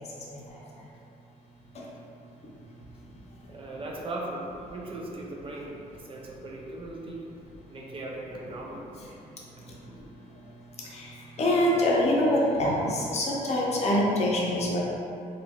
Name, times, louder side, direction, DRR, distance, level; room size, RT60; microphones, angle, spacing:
voice 1, 3.5-7.2 7.7-8.8, right 2 dB, 35° right, -2 dB, 0.4 m, -38 dB
voice 2, 11.4-14.8, left 1 dB, 45° left, -4 dB, 0.6 m, -24 dB
2.9 x 2.4 x 2.7 m, 2.7 s
cardioid pair, 115°, 16 cm